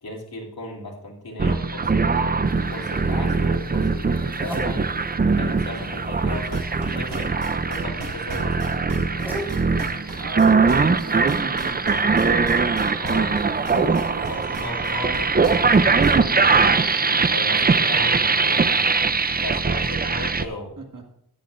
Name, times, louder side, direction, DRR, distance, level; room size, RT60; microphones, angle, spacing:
voice 1, 0.0-2.1 2.7-4.9 5.2-7.3 7.7-9.2 13.0-13.6 14.1-16.5 17.3-18.8 19.4-20.8, left 1 dB, 65° left, -1 dB, 3.0 m, -36 dB
sound 1, 1.4-20.5, right 4 dB, 25° right, 0.5 m, -21 dB
sound 2, 2.4-19.5, equal, 5° right, 4.1 m, -41 dB
sound 3, 6.5-16.2, right 2 dB, 75° right, 3.8 m, -36 dB
voice 2, 10.2-12.0 20.8-21.1, right 2 dB, 55° right, 3 dB, 1.8 m, -36 dB
14.0 x 10.5 x 2.6 m, 0.79 s
wide cardioid pair, 120°, 39 cm